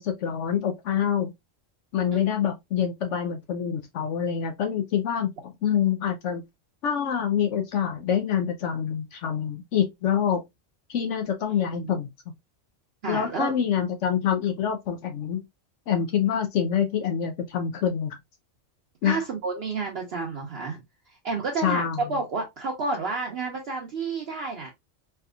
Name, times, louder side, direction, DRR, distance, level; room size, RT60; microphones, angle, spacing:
voice 1, 0.0-1.3 1.9-5.3 5.6-6.4 6.8-10.4 10.9-12.1 13.1-15.5 15.9-18.1 19.0-19.2 21.6-22.0, left 8 dB, 70° left, 0.9 m, -26 dB
voice 2, 11.6-12.0 13.0-13.6 19.0-20.8 21.1-24.7, right 4 dB, 60° right, 0.9 m, -30 dB
3.3 x 2.8 x 2.3 m
omnidirectional pair, 1.3 m